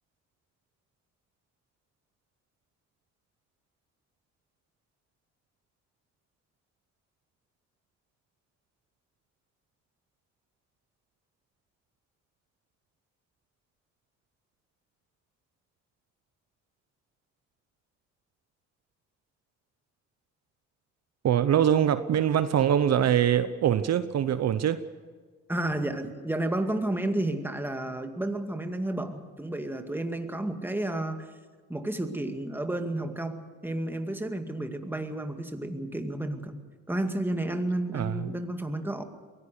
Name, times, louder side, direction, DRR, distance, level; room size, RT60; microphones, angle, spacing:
voice 1, 21.2-24.8 37.9-38.3, right 9 dB, 60° right, 12 dB, 0.9 m, -23 dB
voice 2, 25.5-31.3 31.7-36.6 36.9-39.0, right 1 dB, 5° right, 5 dB, 2.1 m, -31 dB
23.0 x 17.0 x 6.8 m, 1.5 s
cardioid pair, 90°, 30 cm